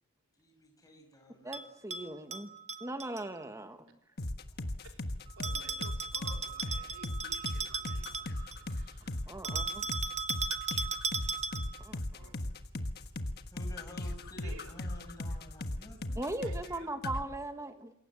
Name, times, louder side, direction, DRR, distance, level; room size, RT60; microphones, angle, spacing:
voice 1, 0.4-1.7 4.1-4.2 4.5-4.7 13.5-16.3, left 1 dB, 15° left, 6.3 m, -52 dB
voice 2, 1.3-2.5 2.8-3.9 9.3-9.9 11.8-12.3 16.2-17.9, right 2 dB, 15° right, 1.6 m, -39 dB
Bell, 1.5-3.3 5.4-8.7 9.4-11.8, right 4 dB, 30° right, 1.3 m, -37 dB
sound 1, 4.2-16.8 17.0-17.2, left 1 dB, 45° left, 1.5 m, -37 dB
voice 3, 5.4-9.2 12.2-12.4 13.8-14.8 16.4-16.9 17.7-17.9, right 3 dB, 75° right, 3.7 m, -54 dB
27.5 x 22.5 x 7.3 m
head